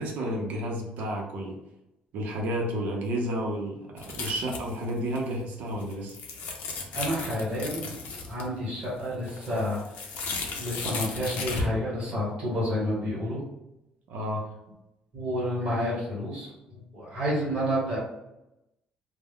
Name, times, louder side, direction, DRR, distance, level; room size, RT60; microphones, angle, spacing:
voice 1, 0.0-1.6 2.1-6.2 14.1-14.5, equal, 65° right, 0 dB, 0.6 m, -31 dB
sound 1, 4.0-4.9 5.2-5.3 5.7-8.5 8.8-11.7, left 4 dB, 80° left, 0.5 m, -35 dB
voice 2, 6.9-7.9 8.3-9.8 10.6-13.4 15.1-18.0, equal, 30° right, -7 dB, 1.2 m, -29 dB
2.2 x 2.0 x 3.4 m, 0.91 s
cardioid pair, 180°, 3 cm